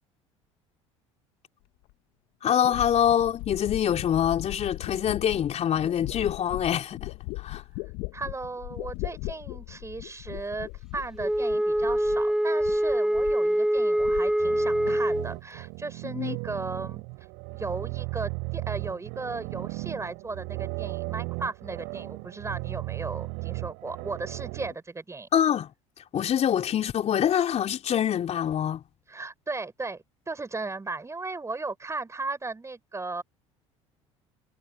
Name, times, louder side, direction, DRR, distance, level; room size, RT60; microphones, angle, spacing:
sound 1, 1.9-2.0 2.6-12.3 12.6-13.5 13.8-14.6 14.9-15.4, left 23 dB, 65° left, 1.8 m, -38 dB
voice 1, 2.4-7.1 7.4-7.6 16.0-16.4 25.3-25.7 26.1-28.8, left 9 dB, 45° left, 3.5 m, -25 dB
voice 2, 8.1-17.0 17.5-25.3 29.1-33.2, right 3 dB, 20° right, 5.4 m, -36 dB
Wind instrument woodwind instrument, 11.2-15.3, right 1 dB, 5° right, 0.9 m, -24 dB
sound 2, 14.4-24.7, right 32 dB, 70° right, 5.1 m, -36 dB
hypercardioid pair, 70°, 16 cm